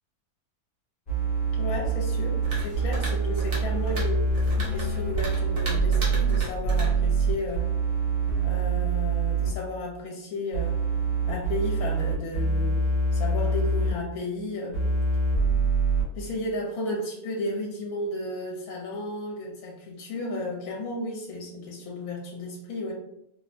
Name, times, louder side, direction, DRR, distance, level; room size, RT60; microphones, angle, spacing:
sound 1, 1.1-9.5 10.5-13.9 14.7-16.0, right 4 dB, 35° left, 0.7 m, -25 dB
voice 1, 1.6-4.3 4.7-7.7 8.4-10.8 11.2-12.8 13.1-14.8 16.2-22.9, left 2 dB, 70° left, -1 dB, 1.1 m, -33 dB
sound 2, 2.4-7.6, right 1 dB, 45° right, 0.8 m, -36 dB
3.0 x 2.1 x 2.5 m, 0.81 s
omnidirectional pair, 1.6 m